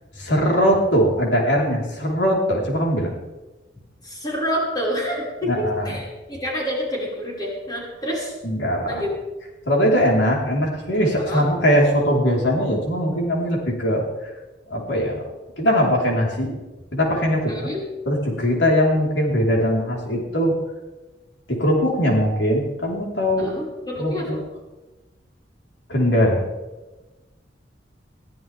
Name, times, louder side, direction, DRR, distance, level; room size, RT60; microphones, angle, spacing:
voice 1, 0.2-3.1 5.5-6.0 8.4-9.0 9.7-14.3 14.7-15.2 15.6-16.5 16.9-17.7 18.1-20.5 21.5-23.5 24.0-24.4 25.9-26.4, equal, 75° left, -1 dB, 4.6 m, -21 dB
voice 2, 4.0-8.3 8.9-9.1 11.3-11.5 17.5-17.8 23.4-24.5, equal, 25° left, -4 dB, 5.8 m, -28 dB
22.0 x 14.0 x 3.7 m, 1.1 s
head